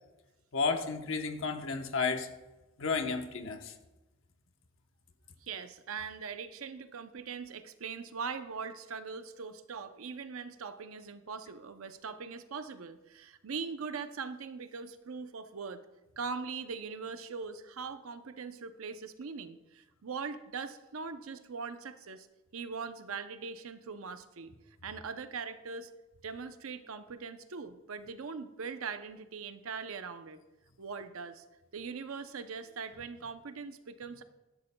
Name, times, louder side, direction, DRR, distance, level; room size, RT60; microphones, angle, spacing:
voice 1, 0.5-2.3 2.8-3.7, left 4 dB, 65° left, 6 dB, 0.9 m, -32 dB
voice 2, 5.4-15.8 16.2-22.3 22.5-24.5 24.8-25.9 26.2-30.4 30.8-31.4 31.7-34.2, right 5 dB, 80° right, 10 dB, 0.6 m, -41 dB
12.5 x 10.5 x 2.3 m, 1.1 s
head